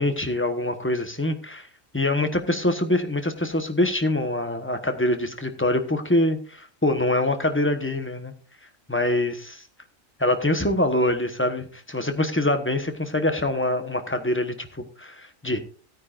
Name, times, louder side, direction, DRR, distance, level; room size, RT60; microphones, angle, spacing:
voice 1, 0.0-1.7 1.9-8.3 8.9-9.6 10.2-15.6, left 1 dB, 10° left, 7 dB, 1.1 m, -24 dB
17.0 x 9.4 x 2.5 m, 0.41 s
omnidirectional pair, 1.3 m